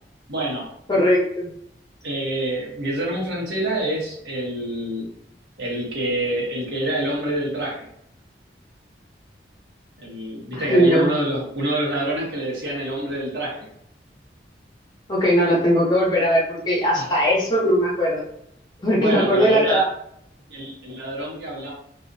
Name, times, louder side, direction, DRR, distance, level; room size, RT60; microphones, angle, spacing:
voice 1, 0.3-0.7 2.0-5.1 5.6-7.9 10.0-13.7 16.9-17.1 18.9-19.8 20.5-21.7, right 1 dB, 80° right, -4 dB, 0.8 m, -26 dB
voice 2, 0.9-1.5 10.5-11.1 15.1-18.2 18.8-19.9, equal, 25° left, -5 dB, 0.7 m, -19 dB
2.4 x 2.1 x 2.5 m, 0.72 s
head